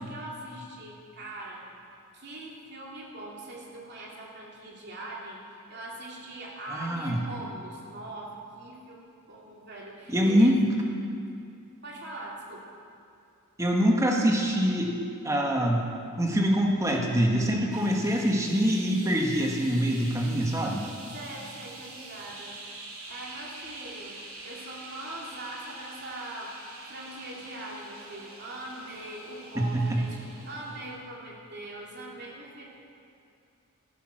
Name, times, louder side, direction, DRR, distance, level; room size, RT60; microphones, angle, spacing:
voice 1, 0.0-1.6 2.1-10.5 11.8-12.7 21.1-22.6 23.1-26.5 26.9-30.2 30.4-32.6, right 1 dB, 55° right, -3 dB, 3.0 m, -41 dB
voice 2, 6.7-7.2 10.1-10.6 13.6-15.0 15.2-15.8 16.2-20.9 29.6-30.0, equal, 15° right, 0 dB, 1.8 m, -24 dB
sound 1, 17.7-31.1, right 2 dB, 90° right, 3.1 m, -45 dB
15.5 x 12.5 x 6.2 m, 2.5 s
head